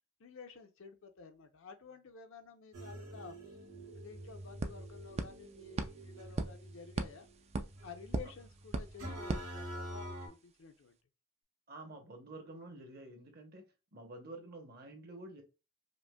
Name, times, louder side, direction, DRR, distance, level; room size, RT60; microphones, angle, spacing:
voice 1, 0.2-3.6 3.9-7.3 7.8-11.0, left 5 dB, 60° left, 0.6 m, -52 dB
sound 1, 2.7-10.3, right 1 dB, 65° right, 1.6 m, -47 dB
sound 2, 3.5-3.6 3.8-10.2, right 3 dB, 30° right, 0.3 m, -41 dB
voice 2, 11.7-13.6 13.9-15.4, right 2 dB, 45° right, 0.8 m, -49 dB
5.0 x 2.1 x 2.2 m
head